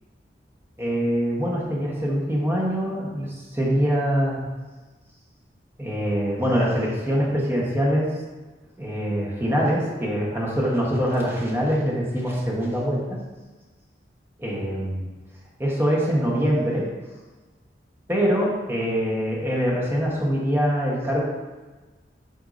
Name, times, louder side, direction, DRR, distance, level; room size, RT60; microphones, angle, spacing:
voice 1, 0.8-4.4 5.8-8.1 8.8-13.0 14.4-15.1 15.6-16.9 18.1-21.2, equal, 15° right, -4 dB, 1.1 m, -24 dB
7.9 x 5.2 x 2.6 m, 1.3 s
head